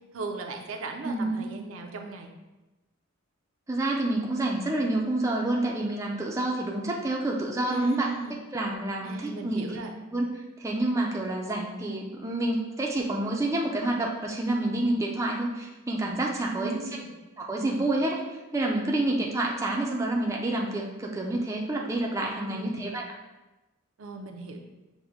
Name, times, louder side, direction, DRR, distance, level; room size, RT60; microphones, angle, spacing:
voice 1, 0.1-2.3 7.7-8.4 9.0-9.9 16.5-17.1 22.4-23.0 24.0-24.6, right 3 dB, 70° right, 3 dB, 0.5 m, -38 dB
voice 2, 1.0-1.5 3.7-9.8 10.1-10.3 10.6-17.0 17.4-18.2 18.5-23.0, right 2 dB, 15° right, -1 dB, 0.4 m, -28 dB
6.1 x 2.1 x 3.5 m, 1.1 s
head